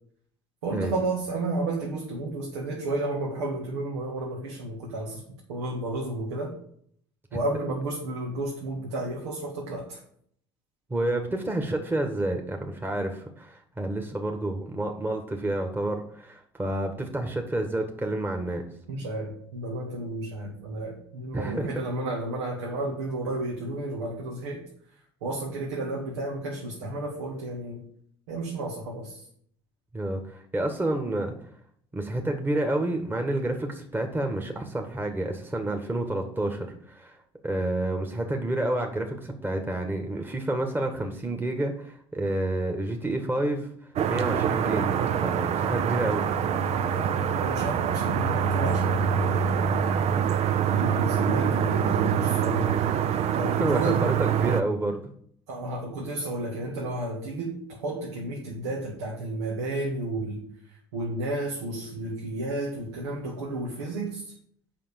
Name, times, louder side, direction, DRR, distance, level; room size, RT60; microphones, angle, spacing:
voice 1, 0.6-5.2 5.5-6.6 7.3-10.0 18.9-24.7 25.2-27.8 28.3-29.2 47.4-49.5 50.6-54.1 55.5-64.3, right 2 dB, 80° right, -1 dB, 1.9 m, -32 dB
voice 2, 10.9-18.6 21.3-21.8 29.9-31.3 31.9-37.2 37.4-43.7 44.1-44.9 45.2-46.2 53.6-55.0, right 1 dB, 15° right, 3 dB, 1.7 m, -29 dB
sound 1, 44.0-54.6, right 8 dB, 50° right, 0.7 m, -25 dB
7.6 x 5.5 x 7.1 m, 0.63 s
hypercardioid pair, 65°, 14 cm